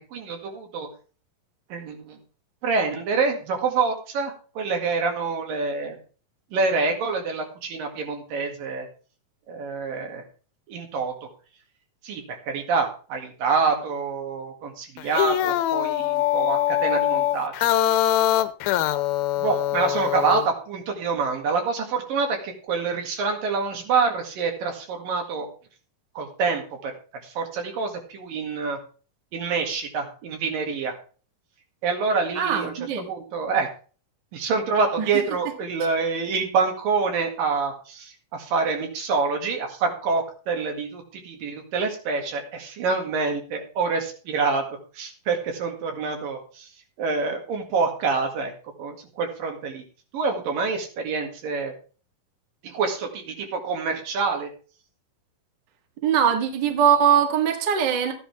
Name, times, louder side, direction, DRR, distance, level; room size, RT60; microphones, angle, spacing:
voice 1, 0.1-0.9 1.7-2.2 2.6-6.0 6.5-8.9 9.5-10.2 10.7-11.3 12.0-17.7 19.4-25.5 26.2-28.8 29.3-31.0 31.8-32.7 33.1-33.7 34.3-44.6 44.9-46.7 47.0-48.5 48.8-49.8 50.1-51.7 52.6-54.5, right 4 dB, 75° right, 3 dB, 3.6 m, -26 dB
sound 1, 15.0-20.5, left 13 dB, 90° left, 2.5 m, -23 dB
voice 2, 32.3-33.1 35.0-35.1 56.0-58.1, right 8 dB, 40° right, 4 dB, 1.6 m, -21 dB
13.5 x 10.0 x 3.4 m, 0.38 s
omnidirectional pair, 4.1 m